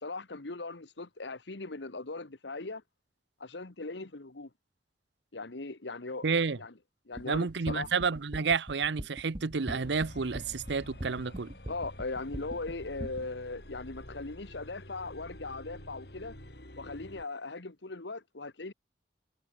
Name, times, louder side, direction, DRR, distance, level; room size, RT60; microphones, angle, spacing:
voice 1, 0.0-2.8 3.4-4.5 5.3-6.2 6.6-6.7 7.1-7.9 11.7-16.4 16.8-18.7, left 3 dB, 85° left, 1.4 m, -39 dB
voice 2, 6.2-6.6 7.3-11.5, right 5 dB, 80° right, 0.7 m, -30 dB
sound 1, 7.2-13.3, equal, 25° right, 1.8 m, -41 dB
sound 2, 9.8-17.3, left 1 dB, 65° left, 6.4 m, -49 dB
head